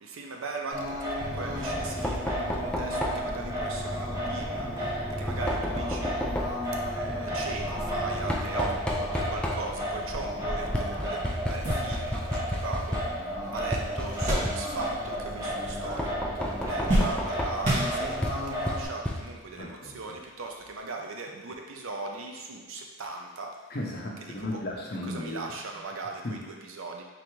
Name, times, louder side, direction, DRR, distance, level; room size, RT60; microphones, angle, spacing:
voice 1, 0.0-4.7 5.2-6.1 6.9-13.0 13.5-16.1 16.4-23.5 25.1-27.0, right 3 dB, 75° right, 2 dB, 0.5 m, -38 dB
Singing, 0.7-18.8, equal, 15° right, 0.8 m, -33 dB
Knock, 1.2-19.6, equal, 5° left, 0.3 m, -34 dB
sound 1, 11.4-15.1 15.4-16.1 16.4-18.4 19.2-19.3 20.6-20.7, equal, 35° right, 1.5 m, -31 dB
voice 2, 19.6-20.2 23.7-25.8 26.2-26.5, left 1 dB, 50° left, -2 dB, 0.6 m, -36 dB
3.8 x 3.4 x 3.1 m, 1.2 s
head